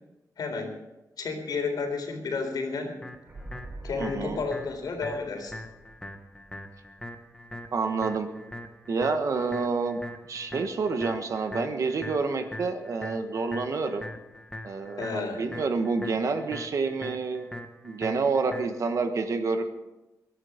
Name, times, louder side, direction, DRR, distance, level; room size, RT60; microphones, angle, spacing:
voice 1, 0.4-0.7 1.2-2.9 3.8-5.5 15.0-15.4, left 4 dB, 75° left, 4 dB, 3.9 m, -31 dB
sound 1, 3.0-19.0, left 1 dB, 10° left, 1.4 m, -42 dB
sound 2, 3.3-7.0 7.3-7.4, right 2 dB, 20° right, 4.9 m, -45 dB
voice 2, 4.0-4.4 7.7-8.3 8.9-10.0 10.3-14.1 14.6-17.5 17.8-19.6, right 4 dB, 55° right, 6 dB, 1.4 m, -28 dB
23.0 x 10.5 x 5.2 m, 0.99 s
wide cardioid pair, 175°, 7 cm